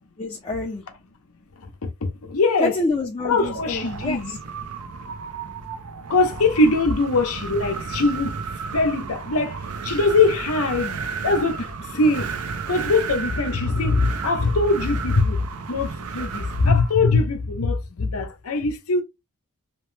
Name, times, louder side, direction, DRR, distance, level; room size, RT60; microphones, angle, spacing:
voice 1, 0.2-0.8 2.6-4.4, left 2 dB, 25° left, 0.5 m, -27 dB
voice 2, 1.8-2.7 3.2-4.4 6.1-8.3 8.7-12.3 12.7-19.0, left 3 dB, 75° left, 0.7 m, -22 dB
Wind, 3.3-17.0, right 5 dB, 80° right, 0.5 m, -33 dB
3.0 x 2.1 x 3.1 m
head